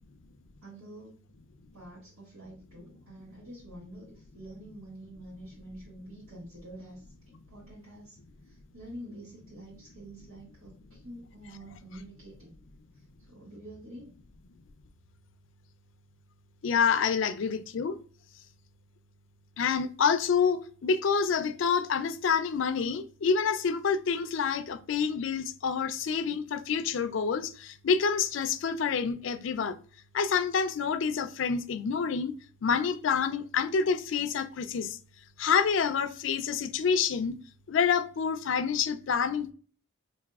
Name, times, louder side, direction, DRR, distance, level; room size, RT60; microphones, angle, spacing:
voice 1, 0.6-1.2 1.7-7.1 7.5-8.2 8.4-12.5 12.9-14.1, right 1 dB, 75° right, 1.6 m, -47 dB
voice 2, 16.6-18.0 19.6-29.8 30.1-32.3 32.6-35.0 35.4-37.3 37.7-39.5, left 6 dB, 60° left, 0.4 m, -27 dB
4.8 x 2.7 x 2.3 m
head